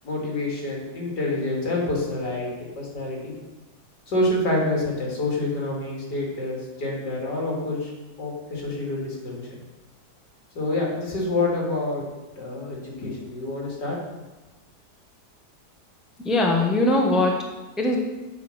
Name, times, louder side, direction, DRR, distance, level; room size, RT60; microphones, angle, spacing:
voice 1, 0.0-2.5 2.8-3.3 4.1-7.9 8.2-9.5 10.5-12.1 12.4-14.0, left 2 dB, 85° left, -2 dB, 3.0 m, -27 dB
voice 2, 16.2-18.0, left 2 dB, ahead, 0 dB, 1.0 m, -21 dB
8.0 x 4.8 x 6.6 m, 1.1 s
omnidirectional pair, 1.8 m